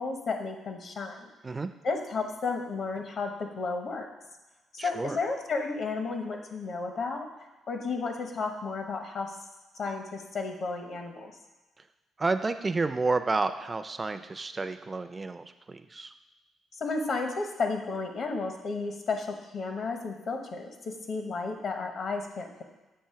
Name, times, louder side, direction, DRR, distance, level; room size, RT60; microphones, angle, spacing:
voice 1, 0.0-1.3 1.8-4.1 4.7-7.3 7.7-9.4 9.8-11.3 16.8-19.3 19.5-22.5, left 4 dB, 60° left, 4 dB, 0.9 m, -32 dB
voice 2, 4.8-5.2 12.2-16.1, right 3 dB, 25° right, 9 dB, 0.4 m, -30 dB
7.5 x 2.7 x 5.7 m, 1.1 s
cardioid pair, 90°, 0 cm